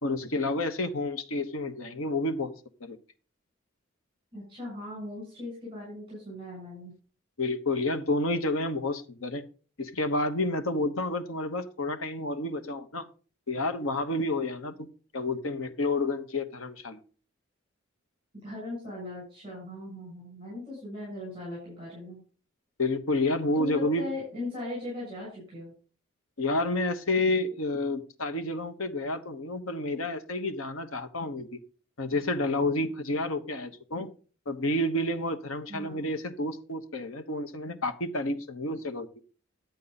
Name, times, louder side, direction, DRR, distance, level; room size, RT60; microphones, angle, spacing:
voice 1, 0.0-2.5 2.8-3.0 7.4-9.4 9.8-13.1 13.5-14.7 15.1-17.0 22.8-24.1 26.4-31.6 32.0-34.1 34.5-39.1, left 2 dB, 90° left, 8 dB, 1.2 m, -30 dB
voice 2, 4.3-6.9 18.4-22.2 23.5-25.7 35.7-36.1, left 2 dB, 25° right, -5 dB, 7.0 m, -39 dB
11.5 x 8.4 x 4.1 m, 0.38 s
head